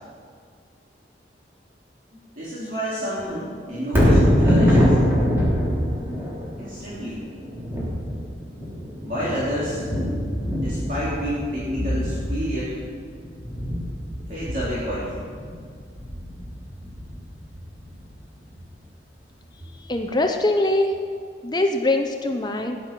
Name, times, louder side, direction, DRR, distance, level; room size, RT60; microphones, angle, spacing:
voice 1, 2.3-4.9 6.6-7.2 9.0-9.8 10.6-12.8 14.3-15.3, equal, 45° right, -9 dB, 3.2 m, -29 dB
Thunder, 3.8-18.0 18.5-18.6, equal, 10° right, 3.5 m, -24 dB
voice 2, 19.7-20.9 21.4-22.8, left 2 dB, 25° left, 4 dB, 0.7 m, -22 dB
17.0 x 10.5 x 5.9 m, 2.1 s
head